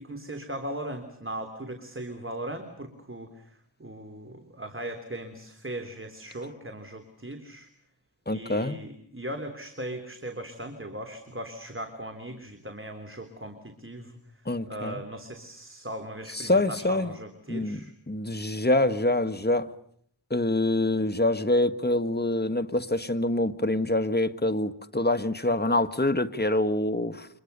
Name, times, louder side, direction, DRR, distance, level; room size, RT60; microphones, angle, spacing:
voice 1, 0.0-7.7 8.3-14.2 14.7-17.9, right 1 dB, 30° right, 3.5 m, -38 dB
voice 2, 8.3-8.8 14.4-15.0 16.3-17.1 17.5-19.7 20.3-27.3, left 1 dB, 25° left, 1.7 m, -25 dB
29.5 x 25.5 x 6.9 m
wide cardioid pair, 45°, 41 cm